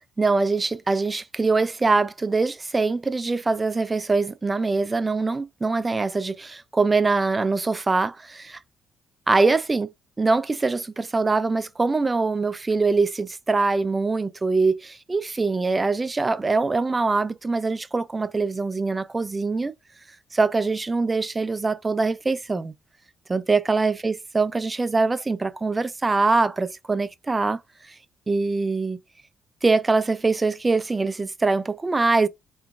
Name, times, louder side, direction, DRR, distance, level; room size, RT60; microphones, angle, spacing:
voice 1, 0.2-8.6 9.3-9.9 10.2-19.7 20.3-22.7 23.3-27.6 27.9-28.0 28.3-29.0 29.6-32.3, right 3 dB, 25° right, 0.3 m, -23 dB
3.1 x 2.5 x 2.2 m
cardioid pair, 95°, 0 cm